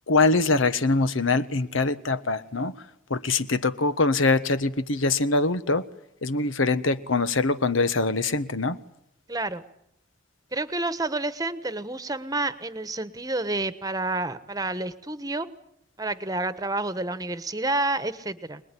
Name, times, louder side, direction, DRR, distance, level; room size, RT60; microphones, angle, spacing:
voice 1, 0.1-2.7 3.1-5.8 6.2-8.8, left 3 dB, 85° left, 13 dB, 1.3 m, -23 dB
voice 2, 9.3-9.6 10.5-15.5 16.0-18.6, right 2 dB, 20° right, 12 dB, 1.2 m, -29 dB
26.5 x 20.5 x 9.9 m, 0.78 s
head